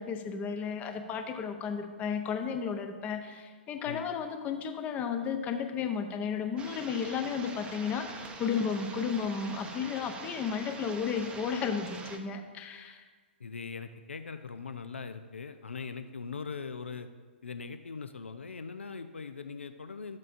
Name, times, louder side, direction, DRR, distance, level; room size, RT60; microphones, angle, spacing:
voice 1, 0.0-13.0, left 6 dB, 20° left, 6 dB, 0.7 m, -33 dB
sound 1, 6.6-12.2, right 4 dB, 15° right, 0.6 m, -44 dB
voice 2, 13.4-17.1 17.4-20.2, left 5 dB, 80° left, 10 dB, 0.5 m, -41 dB
12.0 x 7.4 x 2.6 m, 1.5 s
figure-of-eight pair, 120°, 6 cm